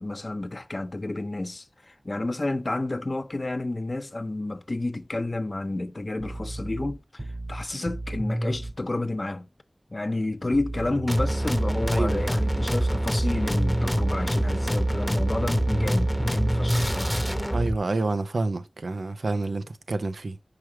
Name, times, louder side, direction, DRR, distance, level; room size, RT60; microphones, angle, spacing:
voice 1, 0.0-7.2 7.5-9.5 9.9-17.1, left 2 dB, 45° left, 0.5 m, -30 dB
sound 1, 6.2-8.8 10.5-14.1 15.2-16.9, right 1 dB, 45° right, 2.1 m, -32 dB
sound 2, 11.1-17.8, right 1 dB, ahead, 0.8 m, -25 dB
voice 2, 11.9-12.3 17.5-20.4, right 2 dB, 90° right, 0.5 m, -28 dB
4.9 x 4.9 x 4.3 m
wide cardioid pair, 60°, 0 cm